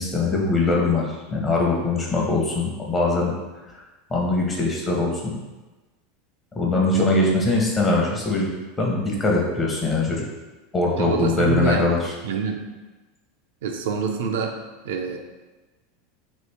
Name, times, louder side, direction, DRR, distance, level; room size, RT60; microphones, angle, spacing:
voice 1, 0.0-3.3 4.1-5.3 6.5-8.5 8.8-10.2 10.7-12.0, left 3 dB, 20° left, -2 dB, 0.8 m, -22 dB
voice 2, 6.9-7.4 11.0-12.0 12.2-12.7 13.6-14.6 14.8-15.2, right 5 dB, 85° right, 3 dB, 0.4 m, -26 dB
3.0 x 2.4 x 3.4 m, 1.2 s
supercardioid pair, 120°, 0 cm